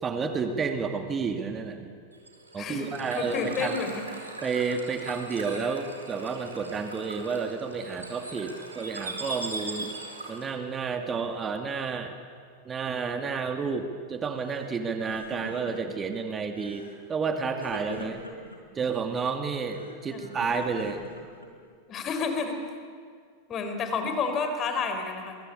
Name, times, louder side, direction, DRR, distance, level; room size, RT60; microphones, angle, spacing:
voice 1, 0.0-1.9 2.5-3.8 4.4-9.9 10.3-12.1 12.7-18.2 18.7-21.0, right 5 dB, 20° right, 6 dB, 2.4 m, -31 dB
Bird / Water, 2.1-10.6, right 2 dB, 80° right, 4.8 m, -40 dB
voice 2, 2.6-2.9 3.1-4.3 20.1-20.3 21.9-22.7 23.5-25.4, left 4 dB, 30° left, 6 dB, 4.6 m, -30 dB
Crying sobbing, 14.4-14.7 15.0-16.0 16.5-17.0 17.6-18.6 19.5-21.7, left 1 dB, 80° left, 4.7 m, -43 dB
27.5 x 23.0 x 8.6 m, 2.1 s
figure-of-eight pair, 90°, 0 cm